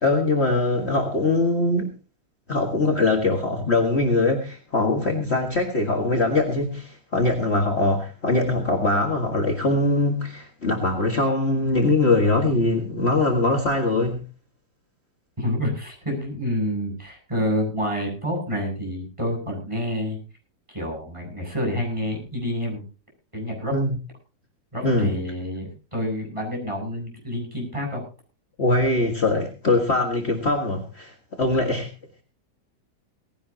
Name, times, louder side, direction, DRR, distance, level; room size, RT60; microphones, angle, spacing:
voice 1, 0.0-1.9 2.5-14.2 23.7-24.0 24.8-25.2 28.6-31.9, left 2 dB, 40° left, 1 dB, 2.0 m, -22 dB
voice 2, 15.4-20.2 20.7-22.8 23.3-23.7 24.7-28.0, equal, 15° right, -1 dB, 7.8 m, -28 dB
19.0 x 16.5 x 2.9 m, 0.33 s
omnidirectional pair, 1.9 m